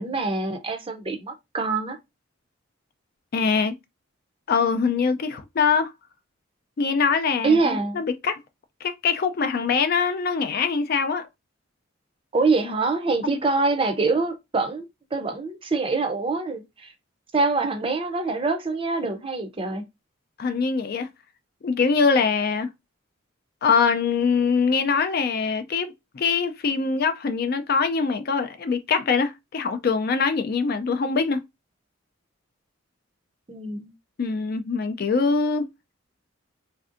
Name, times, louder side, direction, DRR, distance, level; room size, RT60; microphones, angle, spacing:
voice 1, 0.0-2.0 7.4-8.0 12.3-14.9 15.1-16.9 17.3-19.8 33.5-33.9, right 3 dB, 25° right, 0.5 m, -25 dB
voice 2, 3.3-3.8 4.5-5.9 6.8-8.4 8.8-11.3 20.4-21.1 21.6-22.7 23.6-31.4 34.2-35.7, left 5 dB, 50° left, 0.4 m, -23 dB
3.2 x 2.6 x 2.5 m
head